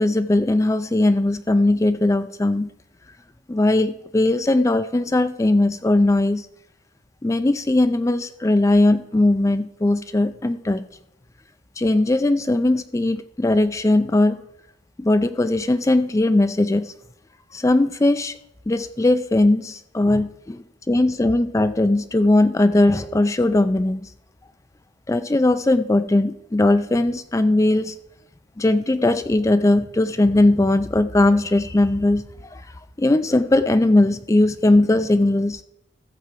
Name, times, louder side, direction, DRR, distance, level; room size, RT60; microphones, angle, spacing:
voice 1, 0.0-2.7 3.5-6.5 7.2-10.8 11.8-14.4 15.0-16.9 17.5-18.3 18.7-24.0 25.1-27.9 28.6-32.6 33.0-35.6, left 2 dB, 15° left, 11 dB, 0.3 m, -19 dB
14.0 x 4.6 x 7.5 m, 0.78 s
head